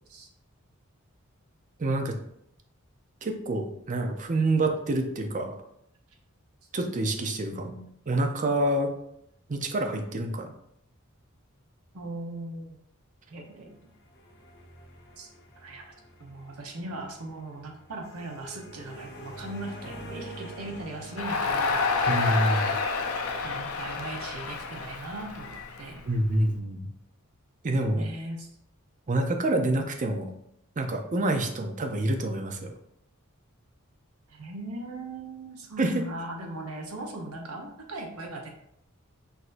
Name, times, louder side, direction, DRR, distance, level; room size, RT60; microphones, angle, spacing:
voice 1, 1.8-2.2 3.2-5.6 6.7-7.7 8.1-8.9 9.5-10.5 22.1-22.7 26.1-26.9 27.6-28.1 29.1-30.3 30.8-32.7 35.8-36.0, right 1 dB, 35° right, 4 dB, 0.5 m, -27 dB
voice 2, 7.5-7.8 11.9-12.8 13.3-13.8 15.2-15.3 15.6-15.8 16.2-22.3 23.4-26.0 28.0-28.5 34.3-38.5, right 2 dB, 90° right, 2 dB, 0.9 m, -39 dB
sound 1, 13.6-22.5, equal, 50° left, 0.8 m, -46 dB
Crowd, 21.2-26.4, left 4 dB, 80° left, 0.5 m, -29 dB
6.0 x 2.6 x 2.5 m, 0.74 s
head